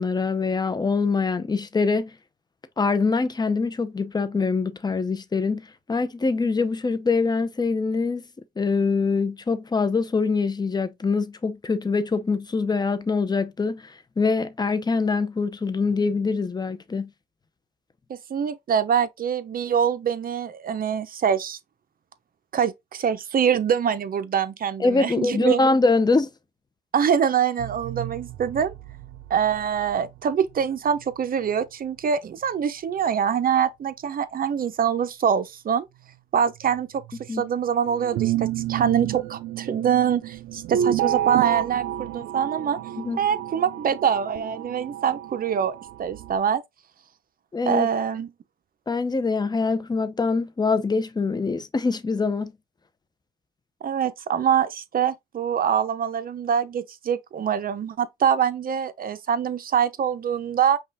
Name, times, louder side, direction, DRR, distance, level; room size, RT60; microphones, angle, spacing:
voice 1, 0.0-2.1 2.8-8.2 8.6-17.1 24.8-26.3 37.3-37.4 43.0-43.2 47.5-47.9 48.9-52.5, left 4 dB, 20° left, 0.7 m, -24 dB
voice 2, 18.1-21.6 22.5-25.6 26.9-28.7 29.3-35.9 36.3-37.0 37.3-42.8 43.2-46.6 47.7-48.3 53.8-60.8, right 8 dB, 45° right, 0.7 m, -24 dB
sound 1, 27.6-30.2 30.6-30.7 31.0-31.1 36.7-36.8 37.0-37.3 37.9-46.4, right 11 dB, 85° right, 0.5 m, -30 dB
5.4 x 2.4 x 3.5 m
cardioid pair, 90°, 20 cm